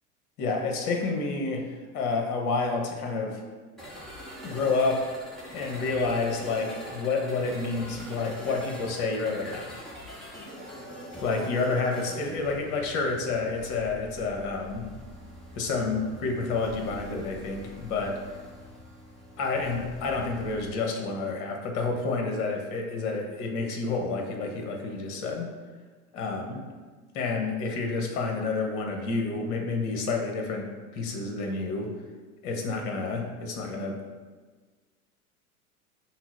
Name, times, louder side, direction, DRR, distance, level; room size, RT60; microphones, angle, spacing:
voice 1, 0.4-1.7 1.9-3.4 4.4-5.2 5.5-9.9 11.2-14.9 15.5-18.2 19.4-25.5 26.1-26.6 27.1-30.7 30.9-31.9 32.4-34.0, left 3 dB, 40° left, 2 dB, 1.0 m, -29 dB
sound 1, 3.8-20.7, equal, ahead, 0.9 m, -43 dB
5.9 x 2.1 x 4.2 m, 1.4 s
figure-of-eight pair, 90°, 45 cm